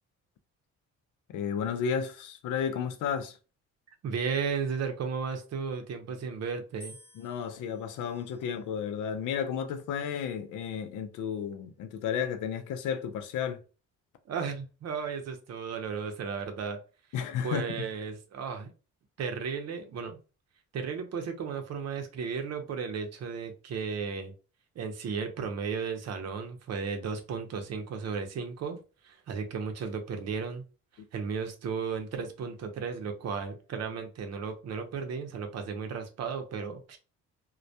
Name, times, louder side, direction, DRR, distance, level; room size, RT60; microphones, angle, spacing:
voice 1, 1.3-3.4 7.2-13.6 17.1-17.8, left 7 dB, 85° left, 0.5 m, -32 dB
voice 2, 4.0-7.0 14.3-16.8 17.4-18.7 19.2-20.2 20.7-24.3 24.8-28.8 29.0-30.6 31.1-37.0, right 5 dB, 55° right, 0.6 m, -34 dB
sound 1, 6.8-9.0 9.8-10.4, equal, 55° left, 1.0 m, -56 dB
2.2 x 2.1 x 2.6 m
cardioid pair, 90°, 30 cm